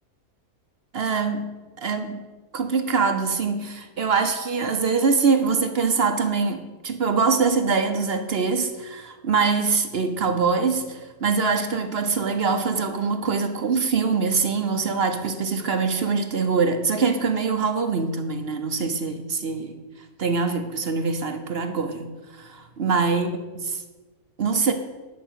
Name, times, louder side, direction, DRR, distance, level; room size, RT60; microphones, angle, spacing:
voice 1, 0.9-1.5 1.8-2.3 2.5-19.8 20.2-23.3 24.4-24.7, right 5 dB, 50° right, 7 dB, 0.9 m, -23 dB
11.5 x 5.2 x 8.1 m, 1.3 s
omnidirectional pair, 1.6 m